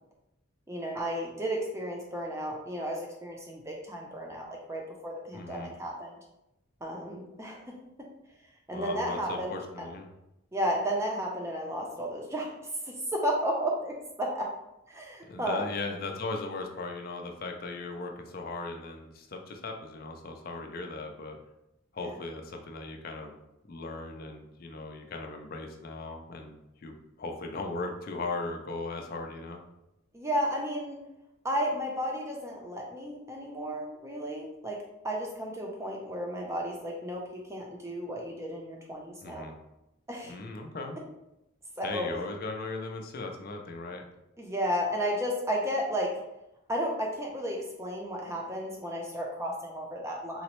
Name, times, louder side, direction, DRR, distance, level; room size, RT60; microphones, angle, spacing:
voice 1, 0.7-6.2 6.8-7.7 8.7-9.5 10.5-12.6 12.8-14.5 14.9-15.7 22.0-22.2 30.1-31.0 31.4-34.8 35.0-39.5 40.1-40.3 41.8-42.1 44.4-46.1 46.7-50.4, equal, 15° right, -1 dB, 0.5 m, -33 dB
voice 2, 5.3-5.7 8.7-10.1 15.3-21.4 21.9-23.4 23.7-29.6 39.2-39.6 40.2-41.0 41.8-44.0, left 3 dB, 45° left, 3 dB, 0.4 m, -38 dB
3.8 x 2.0 x 2.9 m, 0.89 s
head